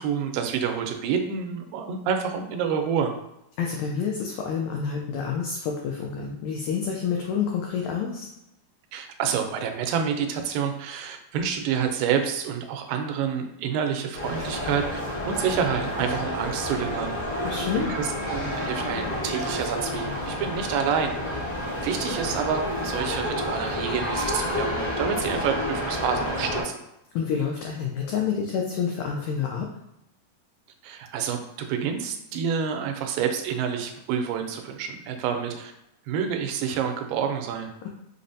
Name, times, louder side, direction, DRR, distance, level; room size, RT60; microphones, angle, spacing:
voice 1, 0.0-3.1 8.9-17.1 17.8-21.2 21.8-26.7 30.8-35.7 36.1-37.7, right 7 dB, 90° right, 5 dB, 2.2 m, -28 dB
voice 2, 3.6-8.3 17.4-17.9 27.1-29.7 37.8-37.9, left 6 dB, 90° left, 0 dB, 1.6 m, -28 dB
sound 1, 14.1-26.6, left 1 dB, 65° left, 1.0 m, -30 dB
5.6 x 2.0 x 2.6 m, 0.83 s
omnidirectional pair, 3.9 m